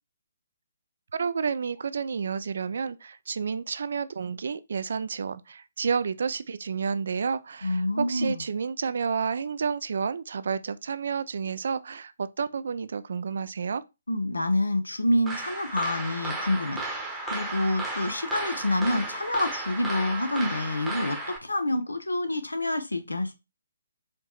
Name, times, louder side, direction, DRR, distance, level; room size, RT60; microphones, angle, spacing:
voice 1, 1.1-13.8, right 6 dB, 60° right, 0.3 m, -30 dB
voice 2, 7.6-8.4 14.1-16.8 17.3-23.3, left 1 dB, 85° left, 0.7 m, -27 dB
sound 1, 15.3-21.4, right 2 dB, 5° right, 0.9 m, -34 dB
4.4 x 3.0 x 2.3 m
figure-of-eight pair, 135°, 0 cm